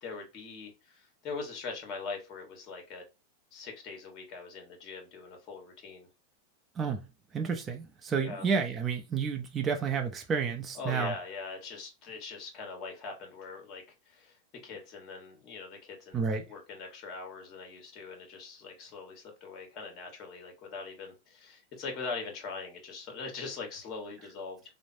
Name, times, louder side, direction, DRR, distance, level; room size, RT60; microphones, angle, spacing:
voice 1, 0.0-3.0 3.5-6.1 8.1-8.4 10.7-24.6, left 4 dB, 40° left, 1.2 m, -42 dB
voice 2, 7.3-11.1 16.1-16.5, right 6 dB, 20° right, 0.5 m, -30 dB
3.1 x 2.0 x 2.5 m
supercardioid pair, 135°, 0 cm